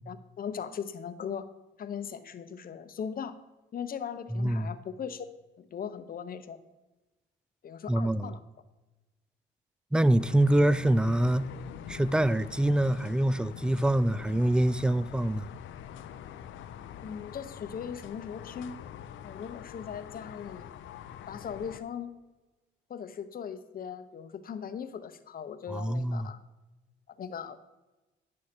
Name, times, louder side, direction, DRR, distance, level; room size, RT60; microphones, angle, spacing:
voice 1, 0.1-1.5 1.8-3.3 3.7-5.3 5.6-6.6 7.6-8.4 17.0-18.8 19.2-20.7 21.3-22.1 22.9-26.4 27.2-27.6, left 7 dB, 45° left, 0.8 m, -39 dB
voice 2, 4.3-4.7 7.9-8.3 9.9-11.5 11.9-15.5 25.7-26.3, right 1 dB, 5° right, 0.3 m, -25 dB
sound 1, 10.2-21.8, left 9 dB, 75° left, 0.6 m, -45 dB
9.7 x 6.4 x 4.3 m
cardioid pair, 90°, 20 cm